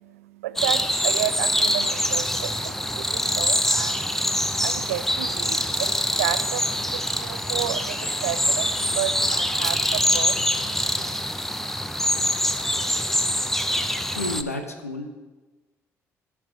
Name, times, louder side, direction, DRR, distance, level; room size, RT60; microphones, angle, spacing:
voice 1, 0.0-11.2, right 13 dB, 75° right, 15 dB, 0.4 m, -32 dB
sound 1, 0.6-14.4, equal, 5° left, 0.7 m, -24 dB
voice 2, 14.1-15.1, left 2 dB, 85° left, 7 dB, 0.8 m, -30 dB
16.5 x 5.9 x 3.9 m, 1.2 s
figure-of-eight pair, 45°, 8 cm